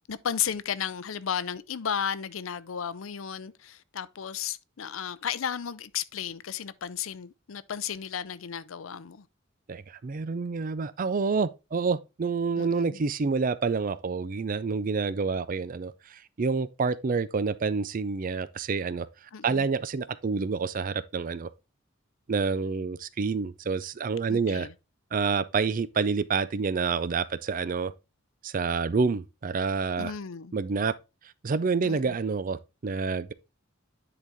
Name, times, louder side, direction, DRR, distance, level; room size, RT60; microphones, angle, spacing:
voice 1, 0.0-9.2 12.6-13.0 19.3-19.7 24.3-24.7 30.0-30.5 31.8-32.1, left 8 dB, 85° left, 0.6 m, -34 dB
voice 2, 9.7-19.1 19.4-21.5 22.3-24.7 25.1-27.9 28.4-30.1 30.5-30.9 31.4-33.3, right 4 dB, 45° right, 0.4 m, -28 dB
10.0 x 4.0 x 3.5 m
head